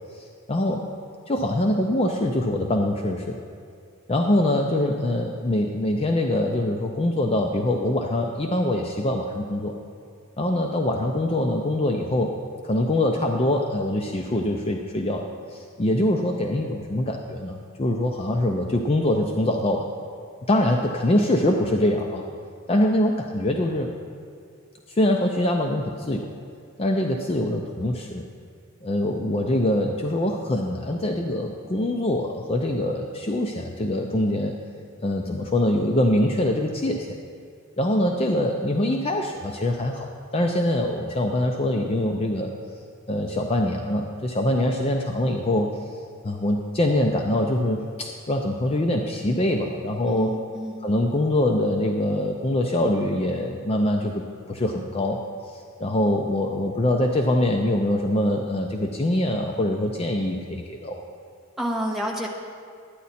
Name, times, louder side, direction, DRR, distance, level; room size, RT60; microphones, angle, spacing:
voice 1, 0.1-0.8 1.3-3.4 4.1-9.7 10.4-12.3 12.6-19.9 20.5-22.2 22.7-23.9 24.9-26.3 26.8-28.2 28.8-34.5 35.0-37.2 37.8-40.1 40.3-42.5 43.1-45.7 46.2-50.3 50.8-54.2 54.5-55.2 55.5-61.0, left 1 dB, 25° left, 2 dB, 0.5 m, -24 dB
voice 2, 50.0-50.8 61.6-62.3, equal, ahead, -2 dB, 1.0 m, -29 dB
11.5 x 9.4 x 4.2 m, 2.3 s
head